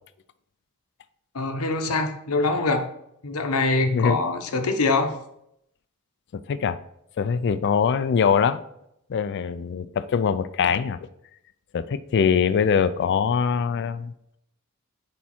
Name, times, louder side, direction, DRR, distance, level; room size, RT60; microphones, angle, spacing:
voice 1, 1.3-2.9 3.2-5.1, left 3 dB, 75° left, 6 dB, 0.9 m, -24 dB
voice 2, 7.2-8.6 9.1-11.0 11.7-14.1, left 6 dB, 50° left, 14 dB, 0.3 m, -22 dB
8.5 x 3.6 x 4.4 m, 0.76 s
head